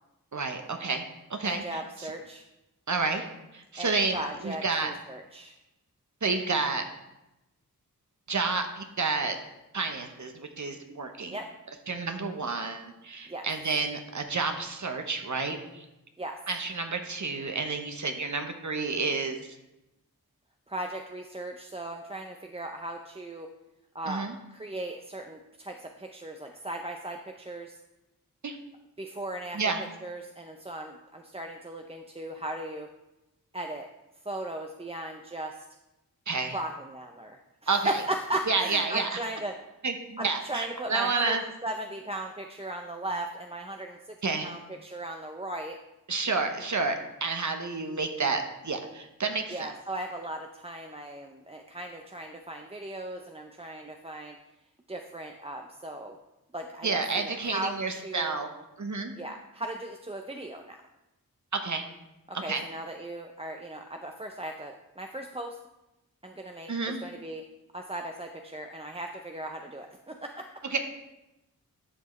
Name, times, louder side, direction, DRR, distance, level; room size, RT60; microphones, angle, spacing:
voice 1, 0.3-1.0 1.3-2.1 2.9-3.3 3.5-4.9 6.2-6.8 8.3-9.4 9.7-11.4 11.9-15.8 16.5-19.6 24.1-24.3 28.4-28.6 29.5-29.8 36.3-36.6 37.7-38.0 38.5-39.2 39.8-41.4 44.2-44.5 46.1-49.7 56.8-58.5 58.8-59.1 61.5-61.8 62.3-62.6 66.7-67.0 70.7-70.8, right 4 dB, 50° right, 5 dB, 0.9 m, -30 dB
voice 2, 1.4-2.4 3.8-5.5 11.3-11.5 13.3-13.5 16.2-16.4 20.7-23.5 23.9-27.8 29.0-32.9 33.5-33.9 34.3-35.6 36.5-39.6 40.2-44.1 44.4-45.8 49.5-54.4 54.9-56.2 56.5-58.4 59.1-60.8 62.3-65.6 66.2-67.4 67.7-70.5, right 1 dB, 15° right, 3 dB, 0.6 m, -37 dB
11.0 x 6.0 x 3.2 m, 0.96 s
wide cardioid pair, 55°, 36 cm